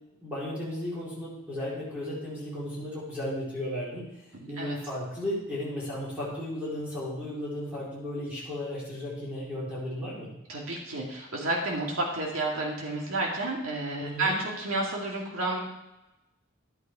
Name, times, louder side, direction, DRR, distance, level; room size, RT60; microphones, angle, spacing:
voice 1, 0.2-10.3 14.0-14.3, left 1 dB, 5° right, -9 dB, 4.7 m, -35 dB
voice 2, 4.3-4.8 10.5-15.6, right 2 dB, 75° right, -2 dB, 2.4 m, -31 dB
12.0 x 9.2 x 4.8 m, 0.94 s
head